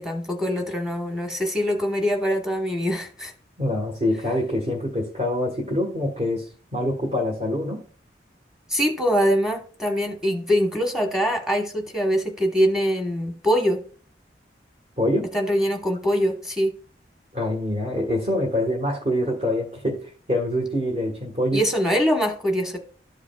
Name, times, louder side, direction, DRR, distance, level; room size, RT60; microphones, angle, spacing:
voice 1, 0.0-3.3 8.7-13.8 15.3-16.7 21.5-22.8, equal, 5° right, 3 dB, 1.1 m, -23 dB
voice 2, 3.6-6.5 6.7-7.8 15.0-15.3 17.3-21.6, left 1 dB, 40° right, -3 dB, 1.4 m, -25 dB
13.5 x 5.0 x 2.3 m, 0.42 s
head